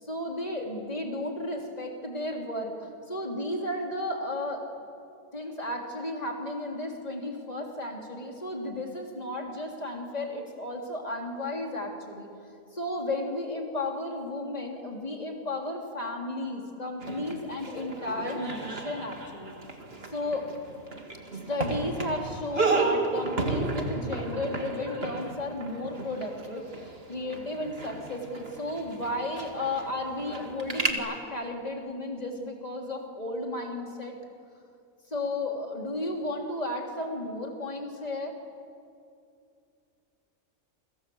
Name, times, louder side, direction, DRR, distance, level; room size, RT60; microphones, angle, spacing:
voice 1, 0.0-2.7 3.1-4.7 5.3-12.3 12.7-19.5 20.1-20.5 21.3-34.2 35.1-38.4, left 1 dB, 25° left, 1 dB, 3.6 m, -33 dB
sound 1, 17.0-30.9, right 3 dB, 40° right, 2.4 m, -33 dB
29.0 x 25.0 x 7.9 m, 2.4 s
omnidirectional pair, 1.6 m